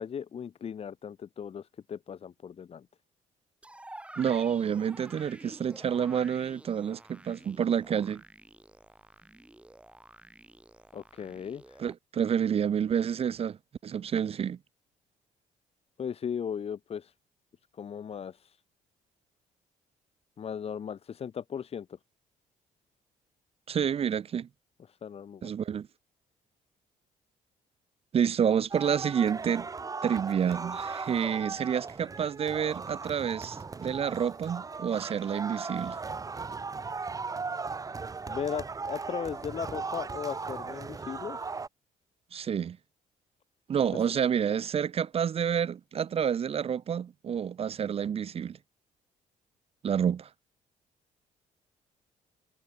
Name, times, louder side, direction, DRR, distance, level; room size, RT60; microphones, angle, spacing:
voice 1, 0.0-2.9 10.9-11.8 16.0-17.1 17.7-18.6 20.4-22.0 24.9-25.5 38.3-41.4 43.9-44.1 44.5-44.6, left 7 dB, 45° left, 2.5 m, -37 dB
sound 1, 3.6-11.9, right 1 dB, 10° right, 6.8 m, -50 dB
voice 2, 4.2-8.2 11.8-13.6 13.8-14.6 23.7-24.5 25.4-25.9 28.1-29.7 30.0-36.0 42.3-42.8 43.7-48.6 49.8-50.3, right 8 dB, 45° right, 1.1 m, -29 dB
sound 2, 28.7-41.7, right 4 dB, 25° right, 1.4 m, -37 dB
cardioid pair, 110°, 14 cm